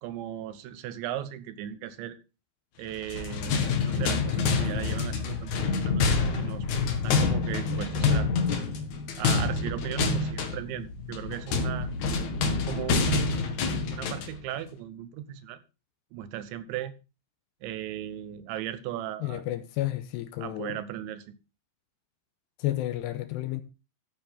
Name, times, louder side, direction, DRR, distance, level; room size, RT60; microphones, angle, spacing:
voice 1, 0.0-2.2 2.8-6.7 7.0-8.3 9.2-11.9 12.7-13.5 13.9-15.6 16.1-17.0 17.6-19.4 20.4-21.4, right 11 dB, 80° right, 3.2 m, -37 dB
sound 1, 3.0-14.4, left 4 dB, 55° left, 2.2 m, -27 dB
voice 2, 19.2-20.8 22.6-23.6, left 15 dB, 80° left, 2.7 m, -31 dB
14.5 x 8.7 x 3.5 m
omnidirectional pair, 5.3 m